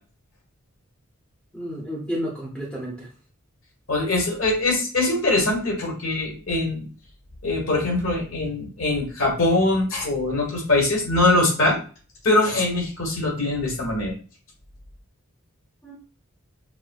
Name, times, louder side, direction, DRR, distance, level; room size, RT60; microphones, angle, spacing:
voice 1, 1.5-3.1 15.8-15.9, equal, 5° left, -4 dB, 0.7 m, -31 dB
voice 2, 3.9-6.8 7.4-11.8 12.2-14.1, left 2 dB, 65° left, -1 dB, 1.3 m, -22 dB
4.9 x 2.1 x 2.3 m, 0.37 s
head